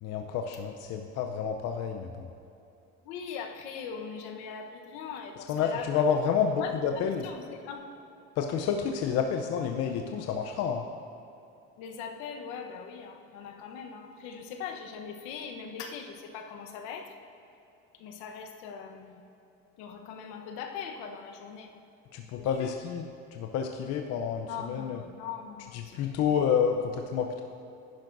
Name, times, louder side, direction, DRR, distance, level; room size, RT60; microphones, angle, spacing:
voice 1, 0.0-2.3 5.4-7.3 8.4-10.8 22.1-25.0 25.7-27.4, left 7 dB, 55° left, 4 dB, 0.7 m, -29 dB
voice 2, 3.1-6.0 6.6-6.7 7.2-7.9 11.8-17.1 18.0-19.2 19.8-21.7 22.4-22.7 24.5-25.8 26.2-26.3, left 7 dB, 75° left, 4 dB, 1.1 m, -40 dB
10.5 x 10.5 x 2.6 m, 2.8 s
supercardioid pair, 105°, 30 cm